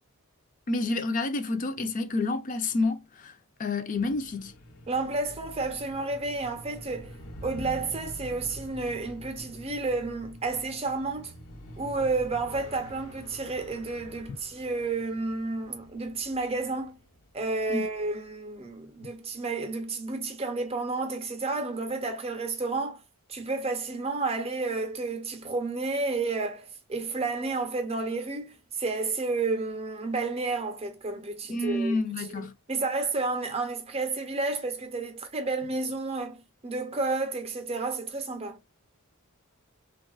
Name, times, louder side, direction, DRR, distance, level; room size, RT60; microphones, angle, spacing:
voice 1, 0.7-3.3 3.6-4.5 17.7-17.9 31.5-32.5, left 2 dB, 35° left, 0.4 m, -29 dB
sound 1, 3.9-18.0, equal, 75° left, 0.7 m, -46 dB
voice 2, 4.9-7.1 7.4-11.3 11.8-17.0 17.3-23.0 23.3-38.6, right 3 dB, 25° right, 0.6 m, -31 dB
3.3 x 2.3 x 2.3 m
head